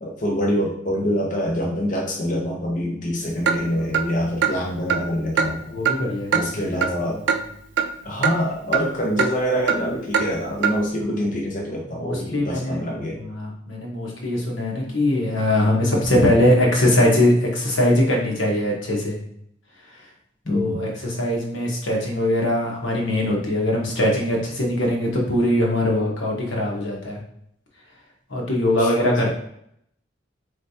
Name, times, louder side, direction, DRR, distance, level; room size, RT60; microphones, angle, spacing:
voice 1, 0.0-5.7 6.3-7.2 8.0-13.2 20.5-20.8 28.8-28.9 29.2-29.3, equal, 40° left, -2 dB, 0.7 m, -25 dB
Clock, 3.5-3.6 3.9-4.0 4.4-4.5 4.9-5.0 5.4-5.5 5.8-6.0 6.3-6.4 6.8-6.9 7.3-7.4 7.8-7.9 8.2-8.3 8.7-8.8 9.2-9.3 9.7-9.8 10.1-10.3 10.6-10.7, right 7 dB, 65° right, 0.4 m, -20 dB
voice 2, 5.7-6.6 11.9-12.8 13.1-19.2 20.5-27.2 28.3-29.3, left 1 dB, 85° left, -1 dB, 1.2 m, -21 dB
4.4 x 3.3 x 2.8 m, 0.71 s
head